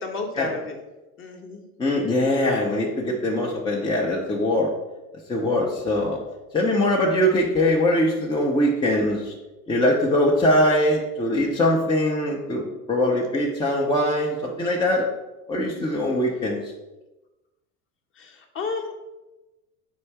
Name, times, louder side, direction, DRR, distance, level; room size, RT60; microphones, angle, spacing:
voice 1, 0.0-0.8 1.2-1.6 18.2-18.9, left 4 dB, 25° left, 2 dB, 0.8 m, -31 dB
voice 2, 1.8-4.7 5.3-6.2 6.5-9.3 9.7-15.1 15.5-16.7, left 1 dB, 10° left, -3 dB, 0.4 m, -22 dB
4.5 x 2.5 x 4.5 m, 1.0 s
hypercardioid pair, 80°, 47 cm